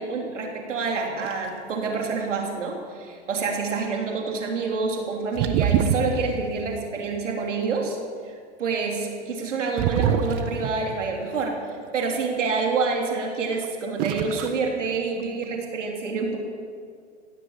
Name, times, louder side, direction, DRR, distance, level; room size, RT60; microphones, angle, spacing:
voice 1, 0.0-8.0 8.2-16.4, right 4 dB, 90° right, 1 dB, 3.3 m, -27 dB
sound 1, 1.2-1.5 5.3-6.4 9.8-10.9 13.5-13.7 14.0-14.6 14.8-15.4, right 9 dB, 45° right, 1.3 m, -24 dB
16.5 x 11.0 x 7.2 m, 2.1 s
hypercardioid pair, 120°, 36 cm